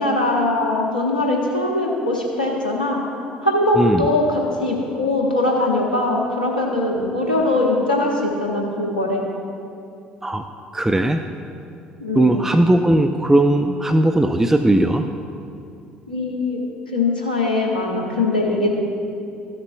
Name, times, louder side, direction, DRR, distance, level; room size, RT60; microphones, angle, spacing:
voice 1, 0.0-3.0 3.4-9.3 12.0-12.4 16.1-16.6 16.9-18.7, left 2 dB, 90° left, -1 dB, 1.0 m, -21 dB
voice 2, 10.7-11.2 12.1-15.1, right 1 dB, 10° right, 7 dB, 0.4 m, -17 dB
13.5 x 6.6 x 2.3 m, 2.5 s
figure-of-eight pair, 55°, 5 cm